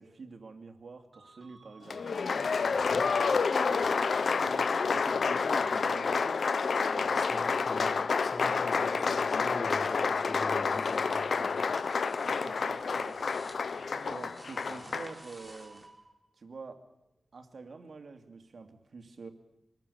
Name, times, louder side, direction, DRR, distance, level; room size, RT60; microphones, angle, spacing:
voice 1, 0.0-2.1 2.5-3.0 3.6-6.5 6.8-7.4 12.2-13.4 14.1-15.8 16.4-16.9 17.3-19.3, right 4 dB, 75° right, 6 dB, 2.4 m, -47 dB
sound 1, 1.1-16.4, right 3 dB, 50° right, 4.0 m, -56 dB
Applause, 1.9-15.2, left 5 dB, 80° left, 0.8 m, -29 dB
voice 2, 7.2-8.0 8.2-11.7, left 2 dB, 55° left, 3 dB, 6.4 m, -43 dB
sound 2, 10.7-15.9, right 1 dB, 15° right, 5.7 m, -54 dB
26.5 x 21.0 x 6.9 m, 0.89 s
cardioid pair, 50°, 0 cm